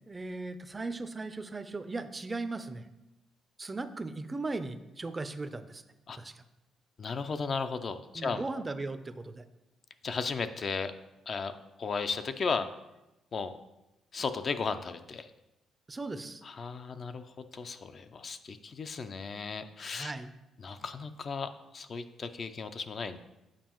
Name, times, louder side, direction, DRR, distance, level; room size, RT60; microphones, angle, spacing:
voice 1, 0.1-2.8 3.6-5.8 6.2-6.4 8.1-9.4 15.9-16.4 19.9-20.3, right 3 dB, 25° right, 11 dB, 0.4 m, -37 dB
voice 2, 7.0-8.6 10.0-10.9 11.3-12.7 13.3-13.5 14.1-15.3 16.4-17.2 17.5-20.1 20.6-23.2, left 5 dB, 45° left, 9 dB, 0.4 m, -35 dB
7.4 x 4.6 x 3.0 m, 0.98 s
cardioid pair, 90°, 0 cm